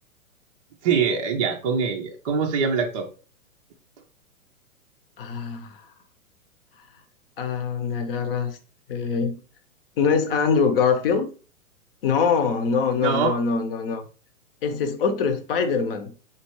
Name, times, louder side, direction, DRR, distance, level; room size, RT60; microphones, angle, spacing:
voice 1, 0.8-3.1 13.0-13.4, right 6 dB, 25° right, 0.5 m, -23 dB
voice 2, 5.2-5.8 7.4-8.6 8.9-9.3 10.0-11.3 12.0-14.0 14.6-16.1, left 5 dB, 40° left, 0.9 m, -23 dB
4.1 x 3.0 x 3.0 m
figure-of-eight pair, 115°, 43 cm